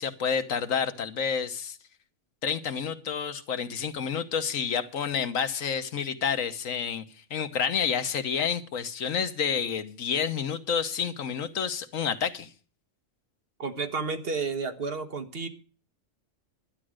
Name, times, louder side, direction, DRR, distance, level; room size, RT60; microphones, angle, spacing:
voice 1, 0.0-1.8 2.4-7.0 7.3-12.5, left 7 dB, 80° left, 10 dB, 1.6 m, -29 dB
voice 2, 13.6-15.5, right 4 dB, 50° right, 8 dB, 1.5 m, -31 dB
12.0 x 9.9 x 6.3 m, 0.40 s
omnidirectional pair, 1.4 m